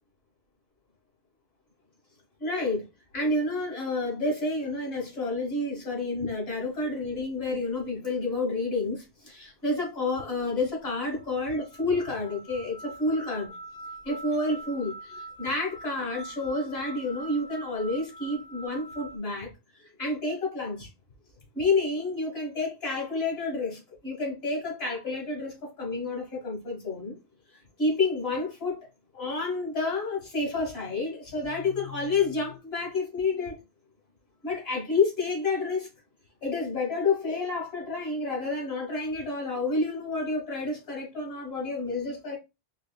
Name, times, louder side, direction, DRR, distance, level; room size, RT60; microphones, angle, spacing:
voice 1, 2.4-2.9 3.1-13.5 14.0-19.5 19.8-20.9 21.5-27.2 27.8-28.9 29.1-33.6 34.4-35.9 36.4-42.4, left 3 dB, 65° left, 1.9 m, -29 dB
sound 1, 6.6-6.8 7.9-8.1 8.8-8.9 9.8-9.9 10.9-11.0 11.2-19.2, right 2 dB, 20° left, 0.8 m, -44 dB
4.8 x 3.1 x 2.2 m
omnidirectional pair, 1.1 m